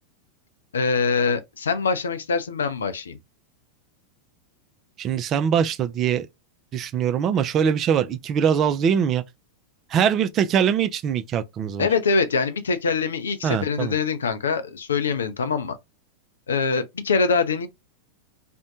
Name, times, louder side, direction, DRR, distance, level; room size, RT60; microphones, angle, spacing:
voice 1, 0.7-3.2 11.8-15.8 16.5-17.7, left 5 dB, 70° left, 0.4 m, -24 dB
voice 2, 5.0-6.3 6.7-9.2 9.9-11.9 13.4-13.9, right 8 dB, 30° right, 0.3 m, -22 dB
2.5 x 2.1 x 2.7 m
figure-of-eight pair, 90°, 0 cm